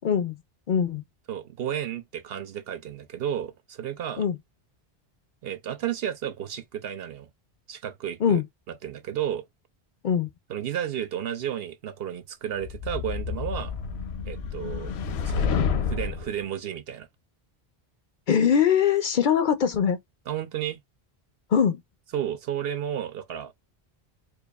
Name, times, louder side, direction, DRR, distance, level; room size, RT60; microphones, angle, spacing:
voice 1, 0.0-0.4 0.7-1.0 4.2-4.4 8.2-8.4 10.0-10.3 18.3-20.0 21.5-21.8, left 7 dB, 60° left, 0.6 m, -22 dB
voice 2, 1.3-4.2 5.4-7.3 7.7-8.4 8.7-9.4 10.5-13.7 14.3-14.9 15.3-17.1 20.3-20.8 22.1-23.5, right 10 dB, 70° right, 0.8 m, -32 dB
sound 1, 12.6-16.3, left 6 dB, 85° left, 0.9 m, -29 dB
4.6 x 2.4 x 2.3 m
omnidirectional pair, 1.1 m